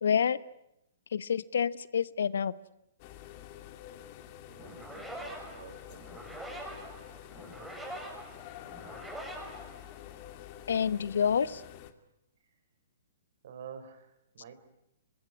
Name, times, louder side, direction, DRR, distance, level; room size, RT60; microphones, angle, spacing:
voice 1, 0.0-0.4 1.1-2.5 10.7-11.6, left 7 dB, 70° left, 18 dB, 1.0 m, -28 dB
sound 1, 3.0-11.9, left 11 dB, 40° left, 2.3 m, -48 dB
voice 2, 4.5-6.0 13.4-14.5, right 7 dB, 60° right, 11 dB, 4.7 m, -49 dB
sound 2, 4.6-10.4, right 1 dB, 5° right, 6.2 m, -44 dB
26.0 x 20.5 x 9.6 m, 0.83 s
hypercardioid pair, 125°, 0 cm